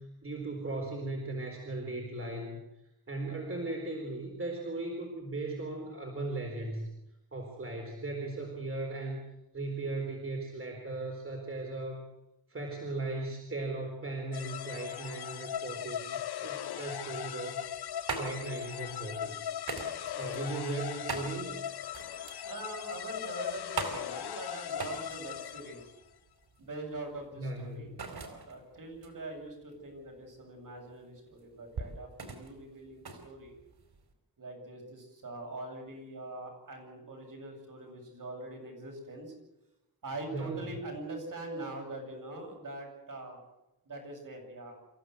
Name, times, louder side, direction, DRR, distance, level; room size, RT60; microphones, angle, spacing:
voice 1, 0.0-2.6 3.1-6.9 7.3-9.2 9.5-12.0 12.5-16.1 16.4-17.6 18.1-19.4 20.1-21.6 27.4-28.0 40.3-40.7, right 2 dB, 35° right, 1 dB, 4.2 m, -37 dB
sound 1, 14.3-26.0, left 10 dB, 80° left, 0.8 m, -39 dB
sound 2, 17.6-34.1, right 4 dB, 75° right, 4.2 m, -43 dB
voice 2, 22.4-25.9 26.6-33.5 34.4-39.3 40.0-43.4 43.8-44.8, right 2 dB, 55° right, 2 dB, 7.9 m, -43 dB
27.5 x 15.5 x 8.0 m, 0.92 s
wide cardioid pair, 115°, 38 cm